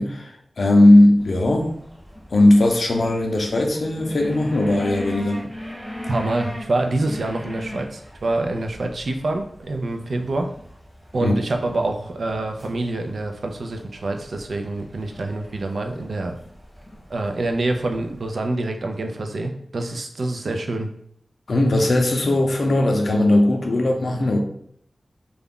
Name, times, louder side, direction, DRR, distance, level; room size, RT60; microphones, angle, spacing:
voice 1, 0.0-1.8 2.3-5.4 11.2-11.3 21.5-24.4, left 1 dB, 75° left, 2 dB, 0.5 m, -18 dB
sound 1, 1.2-18.3, left 1 dB, 5° left, 0.8 m, -39 dB
voice 2, 6.1-10.5 11.1-16.3 17.1-20.9, right 2 dB, 75° right, 4 dB, 0.4 m, -26 dB
2.4 x 2.1 x 3.5 m, 0.68 s
wide cardioid pair, 75°, 0 cm